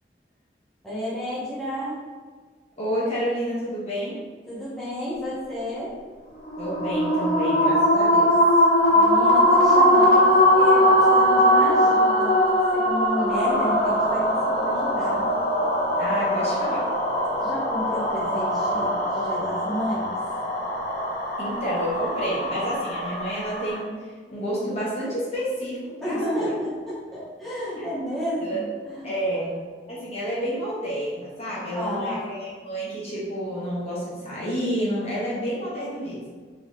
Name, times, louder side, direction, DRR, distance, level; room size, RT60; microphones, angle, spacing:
voice 1, 0.8-2.0 4.5-6.0 8.9-12.4 12.7-15.3 17.4-20.2 26.0-29.6 31.7-32.2, equal, ahead, -11 dB, 1.0 m, -31 dB
voice 2, 2.8-4.2 6.6-8.4 16.0-16.9 21.4-26.5 27.8-27.9 28.4-28.6 29.0-29.5 29.9-36.3, equal, 35° left, -8 dB, 0.9 m, -29 dB
sound 1, 6.5-23.8, equal, 60° left, 0.7 m, -21 dB
3.3 x 3.1 x 2.7 m, 1.5 s
head